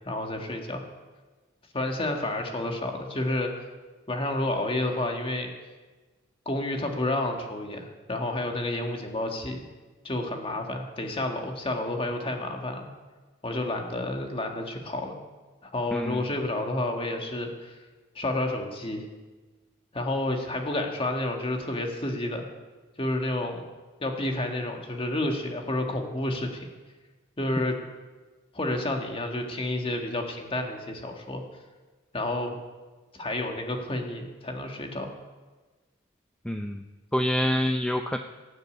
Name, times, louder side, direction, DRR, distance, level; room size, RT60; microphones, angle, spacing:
voice 1, 0.1-0.8 1.7-3.5 4.1-5.5 6.5-9.6 10.0-12.9 13.4-15.2 15.6-17.7 18.2-19.0 19.9-22.5 23.0-23.7 24.0-26.7 27.4-27.8 28.5-31.4 32.1-32.5 33.1-35.1, left 1 dB, 25° left, 3 dB, 1.7 m, -30 dB
voice 2, 36.5-36.8 37.1-38.2, equal, 5° left, 5 dB, 0.4 m, -26 dB
18.0 x 6.7 x 8.3 m, 1.3 s
head